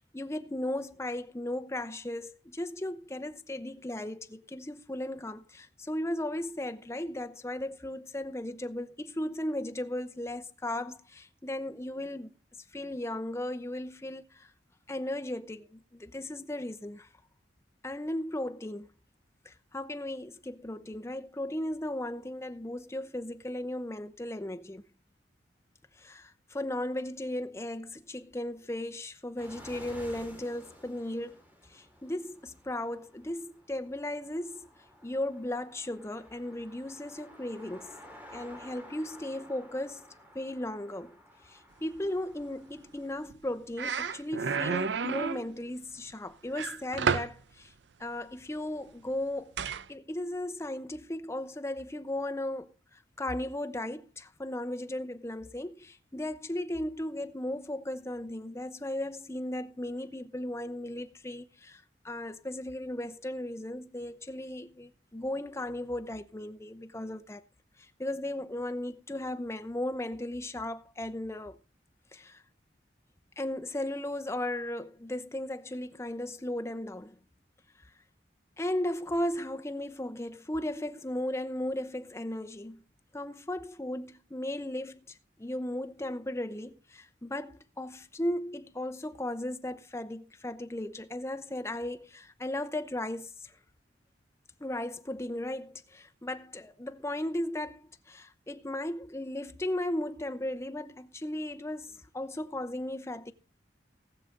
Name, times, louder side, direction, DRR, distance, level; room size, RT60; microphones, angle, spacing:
voice 1, 0.1-12.3 12.7-14.5 14.9-17.1 17.8-18.9 19.4-24.8 26.0-31.4 31.7-34.7 35.0-38.0 38.3-40.1 40.3-41.2 41.5-47.7 48.0-49.5 49.9-67.4 68.0-71.6 72.1-72.4 73.4-77.2 78.6-82.8 83.1-93.5 94.6-103.3, left 1 dB, 15° left, 0.8 m, -36 dB
sound 1, 29.4-43.3, equal, 10° right, 2.4 m, -53 dB
sound 2, 43.3-43.5 43.8-45.5 46.6-47.4 49.6-49.8, right 5 dB, 75° right, 0.6 m, -30 dB
19.0 x 6.6 x 3.8 m
head